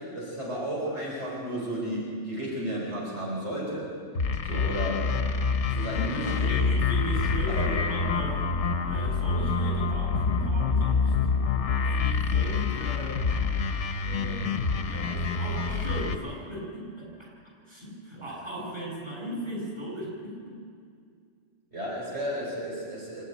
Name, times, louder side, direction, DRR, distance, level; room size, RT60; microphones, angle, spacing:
voice 1, 0.0-3.9 4.4-5.2 5.6-6.5 7.5-7.8 8.2-8.3 21.7-23.2, right 1 dB, 65° right, -5 dB, 4.9 m, -33 dB
sound 1, 4.2-16.2, left 4 dB, 65° left, 1.3 m, -27 dB
voice 2, 6.1-8.4 8.8-11.1 11.8-13.2 14.0-14.5 14.8-17.3 17.7-20.6, right 1 dB, 20° right, -4 dB, 7.7 m, -37 dB
26.0 x 11.5 x 9.5 m, 2.2 s
omnidirectional pair, 1.3 m